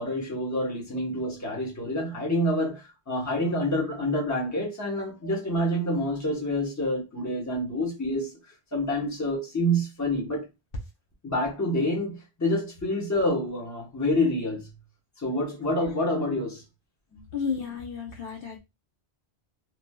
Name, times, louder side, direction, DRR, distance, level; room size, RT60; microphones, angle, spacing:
voice 1, 0.0-8.3 8.7-10.5 11.2-14.7 15.2-16.6 17.1-17.2, left 1 dB, 15° left, 1.0 m, -27 dB
voice 2, 17.3-18.6, left 6 dB, 60° left, 0.9 m, -32 dB
3.0 x 2.7 x 2.2 m
omnidirectional pair, 1.1 m